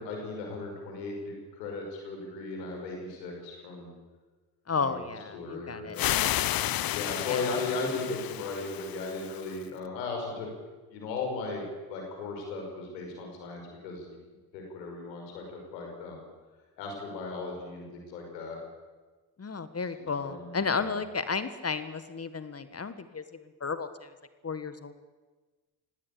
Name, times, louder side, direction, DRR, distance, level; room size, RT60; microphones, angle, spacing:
voice 1, 0.0-3.9 4.7-5.0 5.3-6.1 6.9-10.5 10.9-14.2 14.5-16.2 16.8-18.6 20.0-20.9, left 3 dB, 85° left, 1 dB, 5.6 m, -37 dB
voice 2, 4.7-6.0 7.3-7.4 19.4-23.2 23.6-24.1 24.4-24.9, left 5 dB, 30° left, 12 dB, 1.7 m, -33 dB
sound 1, 6.0-9.6, left 13 dB, 45° left, 0.7 m, -31 dB
19.5 x 16.5 x 8.6 m, 1.3 s
hypercardioid pair, 55°, 49 cm